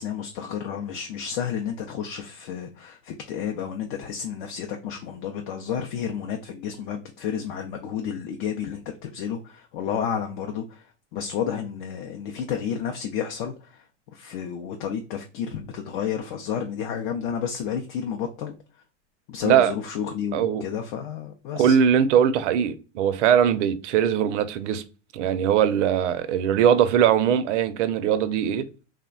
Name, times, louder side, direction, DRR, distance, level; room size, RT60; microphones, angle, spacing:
voice 1, 0.0-10.9 11.1-13.8 14.1-18.5 19.3-21.8, left 8 dB, 45° left, 0.4 m, -31 dB
voice 2, 20.3-20.6 21.5-24.8 25.1-28.6, right 9 dB, 75° right, 0.5 m, -21 dB
3.3 x 2.1 x 2.3 m
supercardioid pair, 135°, 36 cm